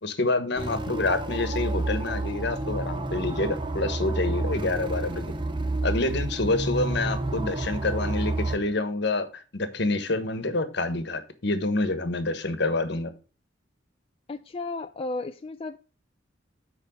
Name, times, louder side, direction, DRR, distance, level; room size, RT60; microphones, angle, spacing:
voice 1, 0.0-5.3 5.8-13.1, left 2 dB, 65° left, 1.3 m, -27 dB
sound 1, 0.6-8.6, right 2 dB, 25° right, 0.7 m, -30 dB
voice 2, 14.3-15.8, left 3 dB, 30° left, 0.4 m, -34 dB
7.1 x 4.8 x 6.3 m
head